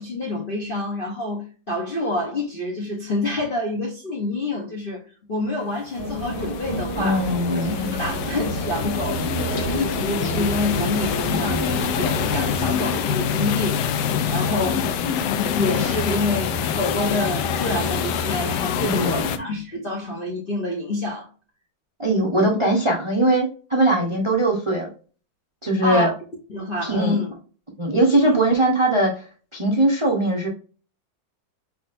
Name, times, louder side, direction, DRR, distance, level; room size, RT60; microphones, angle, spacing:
voice 1, 0.0-5.0 5.3-7.3 7.6-9.2 9.5-13.8 14.3-14.9 15.6-21.3 25.8-26.1 26.5-27.3 28.2-28.4, left 2 dB, 55° left, 0.6 m, -27 dB
sound 1, 6.0-19.4, left 7 dB, 75° left, 1.1 m, -25 dB
sound 2, 6.0-12.7, right 1 dB, 15° right, 1.6 m, -31 dB
voice 2, 7.0-8.0 18.8-19.3 22.0-24.9 25.6-26.1 26.8-27.2 27.8-29.2 29.5-30.5, right 1 dB, 55° right, 0.3 m, -20 dB
4.8 x 3.7 x 2.5 m
omnidirectional pair, 2.2 m